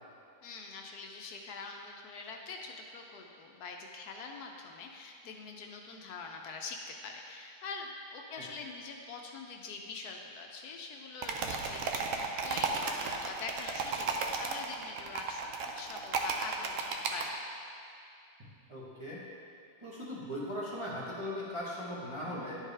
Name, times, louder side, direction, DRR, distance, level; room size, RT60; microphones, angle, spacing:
voice 1, 0.4-15.5 15.7-17.4, left 4 dB, 75° left, 2 dB, 1.1 m, -44 dB
sound 1, 11.2-17.3, right 4 dB, 65° right, 0.8 m, -34 dB
voice 2, 18.4-19.2 19.8-22.6, left 1 dB, 20° right, -8 dB, 1.0 m, -39 dB
10.5 x 4.8 x 3.3 m, 2.5 s
omnidirectional pair, 1.8 m